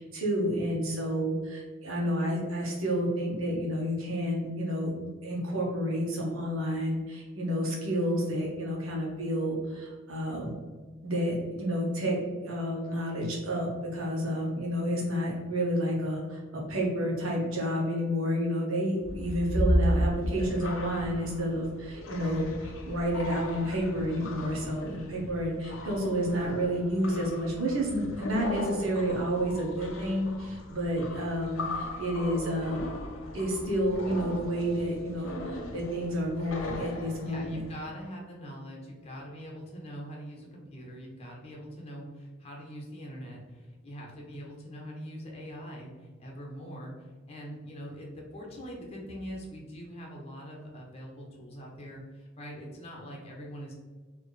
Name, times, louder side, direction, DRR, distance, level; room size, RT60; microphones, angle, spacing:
voice 1, 0.0-10.5 11.0-12.2 12.4-32.8 33.3-37.6, equal, 85° right, -2 dB, 1.3 m, -30 dB
sound 1, 19.0-37.7, equal, 80° left, 0.7 m, -35 dB
voice 2, 37.2-53.7, equal, 30° left, -2 dB, 0.9 m, -43 dB
4.3 x 2.9 x 3.2 m, 1.4 s
head